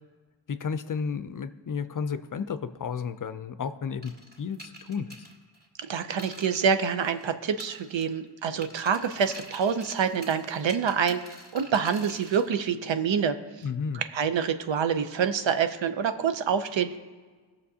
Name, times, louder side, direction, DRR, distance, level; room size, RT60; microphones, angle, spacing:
voice 1, 0.5-5.2 13.6-14.0, left 6 dB, 45° left, 12 dB, 0.5 m, -32 dB
sound 1, 4.0-7.3 7.6-8.3 8.6-12.5, right 1 dB, 20° right, 2.2 m, -47 dB
voice 2, 5.8-11.2 11.5-13.4 13.9-17.0, right 7 dB, 80° right, 9 dB, 0.7 m, -26 dB
19.5 x 6.7 x 2.8 m, 1.4 s
wide cardioid pair, 75°, 44 cm